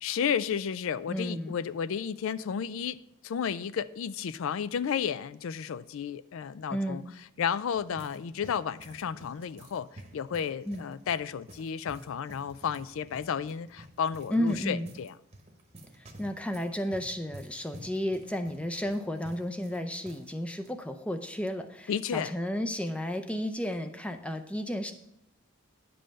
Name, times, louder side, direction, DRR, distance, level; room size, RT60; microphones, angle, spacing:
voice 1, 0.0-7.0 7.4-15.1 21.9-22.3, left 7 dB, 70° left, 0.3 m, -32 dB
voice 2, 1.1-1.5 6.7-7.0 10.7-10.8 14.3-14.9 16.0-24.9, equal, 5° left, 0.5 m, -32 dB
sound 1, 7.4-20.3 20.6-20.7 21.4-21.7, right 1 dB, 30° right, 1.0 m, -51 dB
10.0 x 5.6 x 5.2 m
head